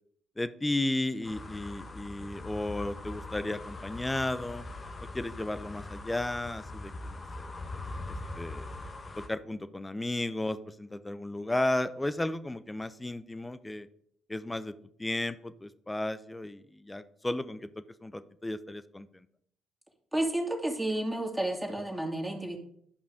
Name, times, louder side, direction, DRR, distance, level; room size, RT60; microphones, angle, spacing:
voice 1, 0.4-4.6 5.1-7.5 8.1-8.7 9.2-13.9 14.3-19.3, left 1 dB, 15° left, 13 dB, 0.8 m, -34 dB
sound 1, 1.2-9.3, left 2 dB, 35° left, 1.2 m, -41 dB
voice 2, 20.1-22.6, right 1 dB, 10° right, 0 dB, 2.5 m, -31 dB
11.5 x 5.3 x 5.0 m, 0.67 s
hypercardioid pair, 45°, 0 cm